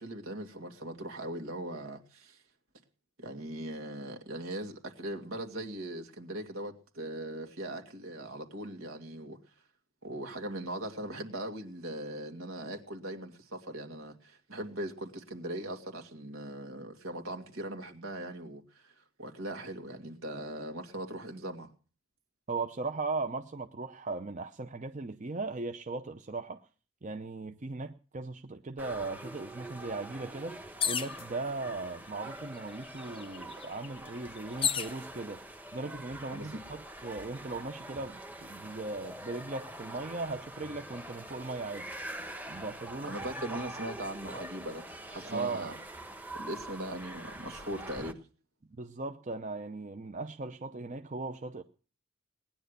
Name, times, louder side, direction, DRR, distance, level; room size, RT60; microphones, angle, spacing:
voice 1, 0.0-2.4 3.2-9.4 10.0-18.9 19.2-21.7 36.3-36.5 43.0-45.7 46.3-48.2, right 1 dB, 80° right, 2.6 m, -40 dB
voice 2, 22.5-26.6 27.0-30.6 30.8-35.4 35.7-41.9 42.5-43.1 43.5-43.6 45.2-45.8 48.8-51.6, right 3 dB, 35° right, 0.7 m, -38 dB
sound 1, 28.8-48.1, right 1 dB, 10° right, 1.2 m, -45 dB
sound 2, 30.8-31.2 32.2-32.3 32.6-35.0 35.7-36.2, left 8 dB, 25° left, 0.7 m, -33 dB
19.5 x 10.5 x 6.7 m
head